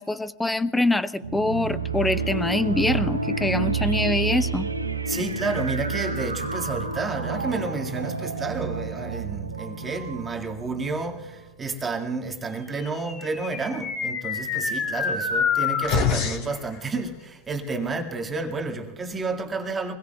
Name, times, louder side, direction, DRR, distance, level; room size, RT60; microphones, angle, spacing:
voice 1, 0.0-4.7, left 2 dB, 5° left, 0.6 m, -24 dB
sound 1, 1.2-11.4, right 5 dB, 80° right, 1.2 m, -29 dB
voice 2, 5.1-20.0, right 3 dB, 15° right, 2.0 m, -30 dB
sound 2, 13.0-16.6, left 6 dB, 40° left, 3.4 m, -26 dB
27.5 x 21.5 x 2.3 m
figure-of-eight pair, 90°, 0 cm